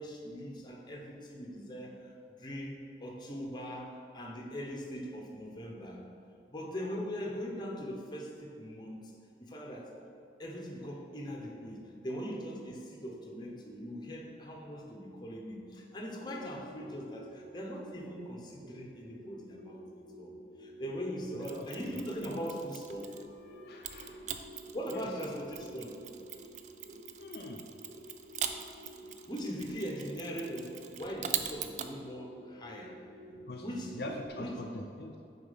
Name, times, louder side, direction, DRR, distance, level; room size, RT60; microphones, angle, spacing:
voice 1, 0.0-6.0 6.5-9.1 9.4-9.9 10.4-19.8 20.1-20.3 20.6-23.1 24.7-26.0 29.3-33.0 33.6-34.5, equal, 25° left, -1 dB, 0.9 m, -41 dB
sound 1, 15.9-34.3, right 1 dB, 75° right, 0.9 m, -52 dB
voice 2, 21.3-21.7 23.3-24.5 24.9-25.1 27.2-27.6 33.3-33.7 33.9-35.1, left 2 dB, 65° left, 2 dB, 0.5 m, -44 dB
Mechanisms, 21.4-23.3 23.8-31.9, right 9 dB, 40° right, 0.3 m, -42 dB
6.7 x 4.4 x 5.6 m, 2.5 s
head